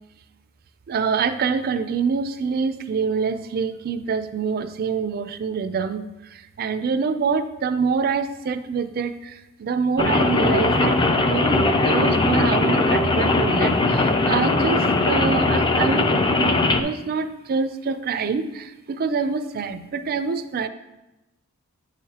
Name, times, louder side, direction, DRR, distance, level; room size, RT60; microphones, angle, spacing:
voice 1, 0.9-6.0 6.3-20.7, right 5 dB, 45° right, 9 dB, 0.4 m, -26 dB
Rain, 10.0-16.8, left 2 dB, 20° left, 0.4 m, -20 dB
8.6 x 6.5 x 2.8 m, 0.99 s
head